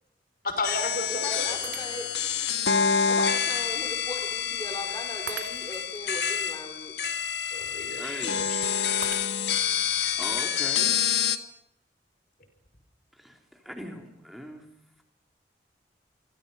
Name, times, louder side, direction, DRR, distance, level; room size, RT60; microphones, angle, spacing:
voice 1, 0.4-1.8 7.5-8.6, left 2 dB, 55° left, 7 dB, 5.9 m, -33 dB
sound 1, 0.6-11.4, left 7 dB, 75° left, 1.7 m, -27 dB
voice 2, 1.1-2.2 3.1-6.9, left 1 dB, 25° left, 5 dB, 4.1 m, -38 dB
Shatter, 1.6-2.3 2.9-3.0 5.3-6.0 9.0-9.8, right 7 dB, 70° right, 2.6 m, -41 dB
voice 3, 8.0-8.5 10.2-11.0 13.1-14.7, equal, ahead, 2 dB, 3.8 m, -40 dB
29.5 x 24.5 x 5.7 m, 0.76 s
head